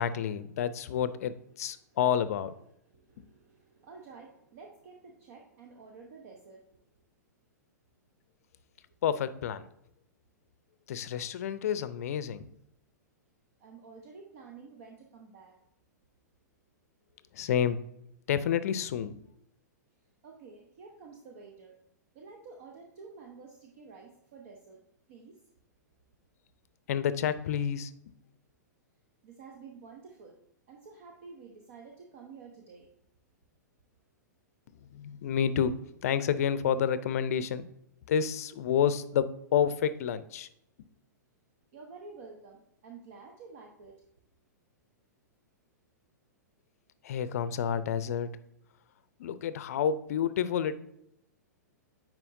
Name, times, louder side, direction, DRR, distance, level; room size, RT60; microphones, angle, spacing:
voice 1, 0.0-2.5 3.2-3.3 9.0-9.7 10.9-12.5 17.3-17.8 18.3-19.2 26.9-27.9 34.8-37.7 38.1-40.5 47.0-48.3 49.2-50.8, left 8 dB, 55° left, 14 dB, 0.5 m, -29 dB
voice 2, 2.9-6.9 13.6-15.6 20.2-21.8 22.1-24.8 25.1-25.4 29.2-30.4 30.7-32.9 41.7-44.0, right 4 dB, 50° right, 2 dB, 0.9 m, -50 dB
9.7 x 4.4 x 2.6 m, 0.78 s
figure-of-eight pair, 105°, 10 cm